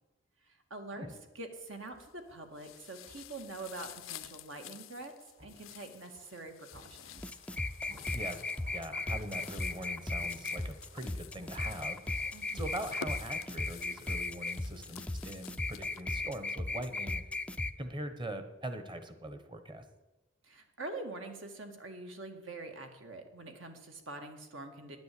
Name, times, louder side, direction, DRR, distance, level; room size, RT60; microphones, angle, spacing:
voice 1, 0.5-1.1 1.4-5.1 5.4-7.2 12.3-12.7 20.4-25.0, right 2 dB, 65° right, 5 dB, 2.0 m, -45 dB
sound 1, 1.6-15.4 15.6-15.8, equal, 50° right, 4.6 m, -60 dB
sound 2, 1.7-2.2 2.5-16.0, left 10 dB, 75° left, 0.6 m, -51 dB
sound 3, 7.2-17.7, left 2 dB, 5° left, 0.4 m, -36 dB
voice 2, 8.7-12.0 12.5-17.2 17.8-19.9, right 1 dB, 25° right, 9 dB, 1.2 m, -42 dB
10.5 x 10.0 x 8.5 m, 1.1 s
head